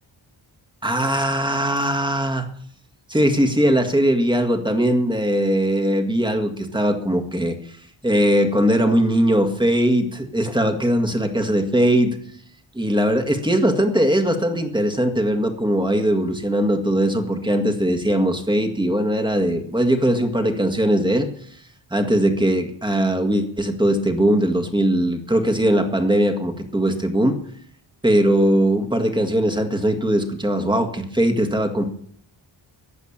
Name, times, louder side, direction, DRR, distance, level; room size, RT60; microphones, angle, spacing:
voice 1, 0.8-2.4 3.1-7.5 8.0-12.2 12.7-21.3 21.9-27.4 28.0-31.8, right 1 dB, 10° right, 4 dB, 1.8 m, -20 dB
15.5 x 10.5 x 7.3 m, 0.64 s
wide cardioid pair, 145°, 45 cm